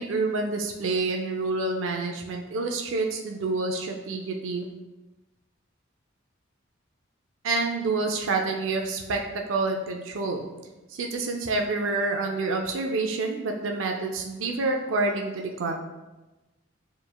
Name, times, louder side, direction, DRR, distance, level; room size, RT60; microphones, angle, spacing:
voice 1, 0.0-4.6 7.4-9.2 9.5-10.4 10.9-15.8, right 3 dB, 80° right, 2 dB, 0.5 m, -28 dB
7.0 x 3.2 x 2.3 m, 1.1 s
head